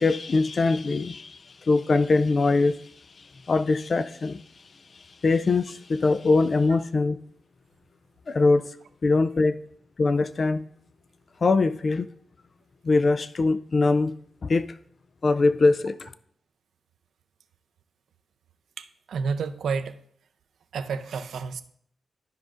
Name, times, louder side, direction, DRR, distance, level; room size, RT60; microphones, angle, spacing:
voice 1, 0.0-2.9 3.2-4.4 4.9-7.2 8.3-8.7 9.0-9.6 10.0-10.6 11.4-12.1 12.8-14.1 14.4-14.7 15.2-16.1, left 3 dB, 50° left, 13 dB, 0.3 m, -22 dB
voice 2, 18.8-20.0 20.7-21.6, right 5 dB, 85° right, 10 dB, 0.5 m, -30 dB
13.0 x 5.1 x 2.5 m, 0.65 s
cardioid pair, 85°, 0 cm